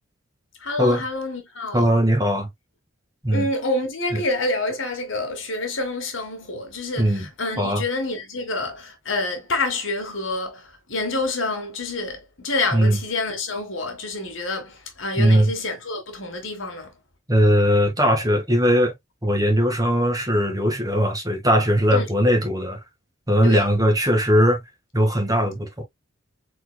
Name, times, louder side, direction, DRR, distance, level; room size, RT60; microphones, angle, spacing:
voice 1, 0.6-1.9 3.3-16.9 21.9-22.1 23.4-23.7, left 2 dB, 70° left, 1.9 m, -28 dB
voice 2, 1.7-2.5 3.2-3.5 4.1-4.2 7.0-7.3 7.6-7.8 12.7-13.0 15.2-15.5 17.3-18.9 19.2-22.8 23.3-24.6 24.9-25.8, equal, 20° right, 1.7 m, -19 dB
4.5 x 4.3 x 2.3 m
head